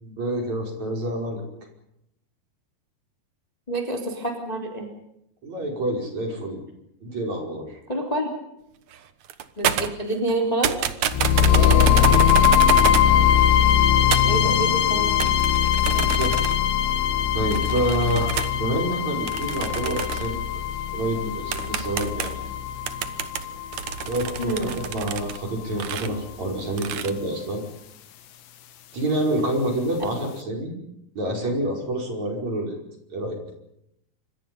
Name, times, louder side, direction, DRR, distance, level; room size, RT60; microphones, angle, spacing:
voice 1, 0.0-1.4 5.4-6.6 7.0-7.8 11.5-12.5 15.8-16.5 17.3-20.5 20.9-22.3 24.0-27.6 28.9-30.7 31.1-32.8 33.1-33.4, right 1 dB, 40° right, 2 dB, 6.2 m, -28 dB
voice 2, 3.7-4.9 7.9-8.3 9.6-10.7 14.2-15.3 24.4-24.7, right 1 dB, 10° left, 2 dB, 2.9 m, -27 dB
sound 1, 8.9-9.0 9.2-10.4 10.6-13.1 14.1-14.4 15.2-16.7 17.5-18.5 19.3-20.4 21.0-21.1 21.5-22.5 22.9-25.4 25.7-26.1 26.8-27.1, right 9 dB, 65° right, 1.9 m, -28 dB
sound 2, 11.1-25.1, left 10 dB, 75° left, 3.6 m, -21 dB
27.5 x 26.0 x 5.4 m, 0.79 s
omnidirectional pair, 4.9 m